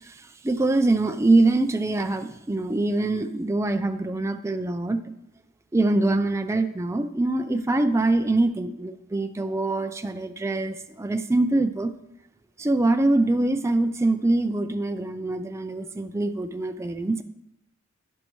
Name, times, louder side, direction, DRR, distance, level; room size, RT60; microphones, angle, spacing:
voice 1, 0.4-5.0 5.7-11.9 12.6-17.2, right 2 dB, 15° right, 7 dB, 0.4 m, -24 dB
11.5 x 10.0 x 3.1 m, 0.82 s
head